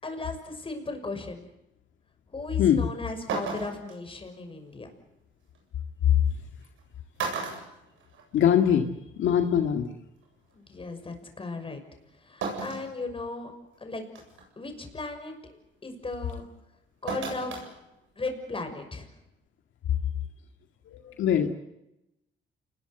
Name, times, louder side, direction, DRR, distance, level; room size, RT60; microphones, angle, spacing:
voice 1, 0.0-1.5 2.3-4.9 10.5-11.8 12.2-13.5 13.8-14.0 14.6-15.3 15.8-16.5 17.0-17.6 18.2-19.1, left 3 dB, 25° left, 6 dB, 6.3 m, -36 dB
sound 1, 2.8-2.9 3.3-3.9 5.5-5.6 6.6-6.8 7.2-8.6 8.9-9.0 10.2-10.3 12.4-12.9 13.5-13.6 14.1-14.4 17.1-17.7 18.0-18.1, right 4 dB, 80° right, 7.9 m, -34 dB
voice 2, 8.3-8.9 9.2-9.9 20.9-21.5, left 9 dB, 75° left, 5 dB, 1.9 m, -22 dB
28.5 x 21.0 x 8.1 m, 0.91 s
cardioid pair, 90°, 20 cm